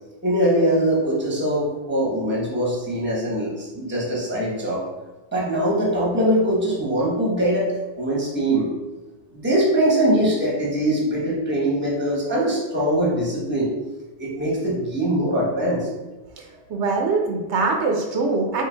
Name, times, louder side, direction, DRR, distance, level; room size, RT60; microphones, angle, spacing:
voice 1, 0.2-4.8 5.3-7.7 8.0-8.7 9.3-13.7 14.2-15.9, right 1 dB, 10° right, -4 dB, 0.9 m, -22 dB
voice 2, 16.4-18.6, right 3 dB, 75° right, 2 dB, 0.9 m, -23 dB
3.7 x 2.8 x 3.8 m, 1.1 s
omnidirectional pair, 1.2 m